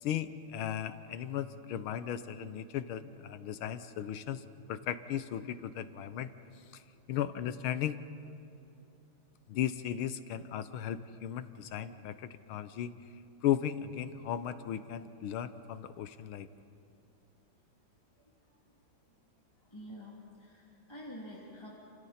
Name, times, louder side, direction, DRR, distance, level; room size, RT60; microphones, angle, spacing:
voice 1, 0.0-6.3 6.7-6.8 7.1-8.0 9.5-12.9 13.4-16.5, left 10 dB, 90° left, 12 dB, 1.7 m, -36 dB
voice 2, 19.7-21.7, equal, 10° left, -5 dB, 2.8 m, -47 dB
29.5 x 28.0 x 4.3 m, 2.7 s
omnidirectional pair, 2.3 m